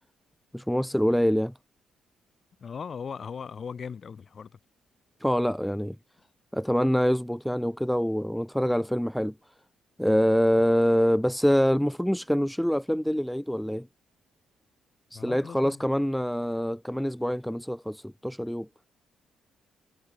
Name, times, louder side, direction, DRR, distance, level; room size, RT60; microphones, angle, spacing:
voice 1, 0.5-1.5 5.2-6.0 6.5-9.3 10.0-13.9 15.1-18.7, equal, ahead, 0.3 m, -25 dB
voice 2, 2.6-4.6 15.1-15.8, left 6 dB, 45° left, 2.5 m, -38 dB
cardioid pair, 90°, 0 cm